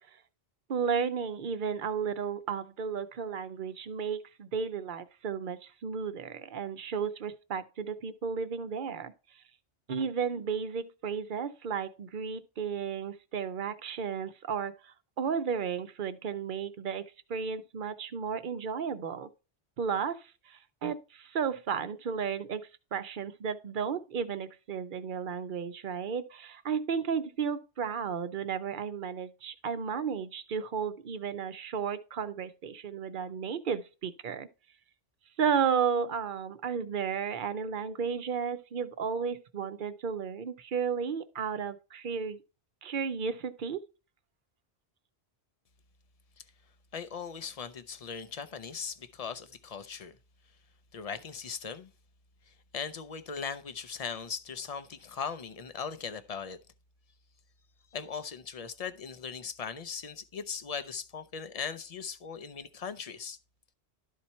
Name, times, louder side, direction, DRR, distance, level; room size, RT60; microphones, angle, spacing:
voice 1, 0.7-9.1 9.9-19.3 19.8-22.6 22.9-34.5 35.4-42.4 42.8-43.8, right 6 dB, 55° right, 0.8 m, -33 dB
voice 2, 46.9-50.2 50.9-51.9 52.5-56.6 57.9-63.4, left 6 dB, 45° left, 0.6 m, -39 dB
12.0 x 4.2 x 4.3 m
omnidirectional pair, 1.1 m